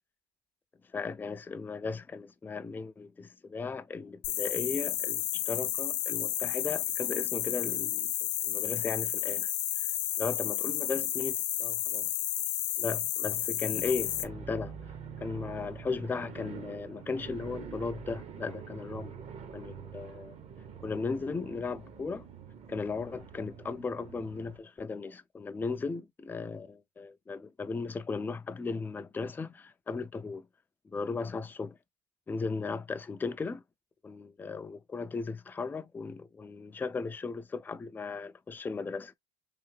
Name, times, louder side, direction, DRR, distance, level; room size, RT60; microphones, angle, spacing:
voice 1, 0.9-12.1 12.8-14.8 15.2-19.2 19.5-20.4 20.8-22.3 22.7-30.5 30.9-31.8 32.3-33.6 34.0-39.1, left 4 dB, 10° left, 0.3 m, -36 dB
sound 1, 4.2-14.2, left 13 dB, 75° left, 0.7 m, -32 dB
sound 2, 13.7-24.6, right 7 dB, 35° right, 0.7 m, -45 dB
3.3 x 2.5 x 3.2 m
supercardioid pair, 105°, 19 cm